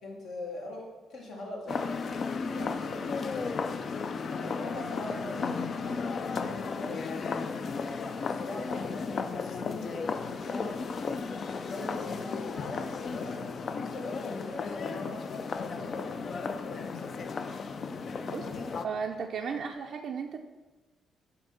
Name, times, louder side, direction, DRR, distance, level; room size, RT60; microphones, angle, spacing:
voice 1, 0.0-3.6 4.4-7.7 8.0-10.0 10.3-10.8 11.7-17.2 18.3-18.9, left 2 dB, 75° left, -3 dB, 1.8 m, -42 dB
sound 1, 1.7-18.8, left 5 dB, 50° left, 0.4 m, -34 dB
sound 2, 4.5-19.7, left 1 dB, 10° left, 0.7 m, -56 dB
voice 2, 18.8-20.4, right 6 dB, 60° right, 2 dB, 0.4 m, -35 dB
7.7 x 2.7 x 5.7 m, 1.2 s
cardioid pair, 90°, 0 cm